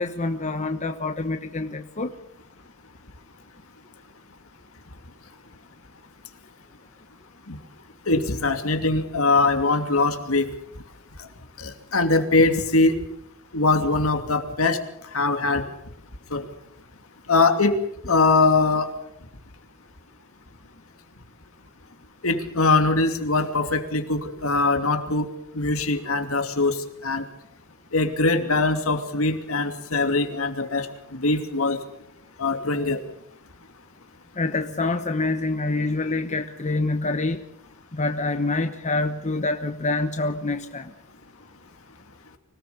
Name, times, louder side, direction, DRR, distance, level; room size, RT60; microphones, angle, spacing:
voice 1, 0.0-2.1 34.4-37.4 37.9-40.9, left 2 dB, 35° left, 7 dB, 1.1 m, -26 dB
voice 2, 8.1-10.5 11.6-12.9 13.5-14.8 15.1-15.6 16.3-16.4 17.3-17.7 18.0-18.9 22.2-25.3 25.5-26.8 27.0-27.3 27.9-31.8 32.4-33.0, left 3 dB, 70° left, 6 dB, 2.8 m, -22 dB
25.0 x 18.5 x 7.1 m, 0.75 s
head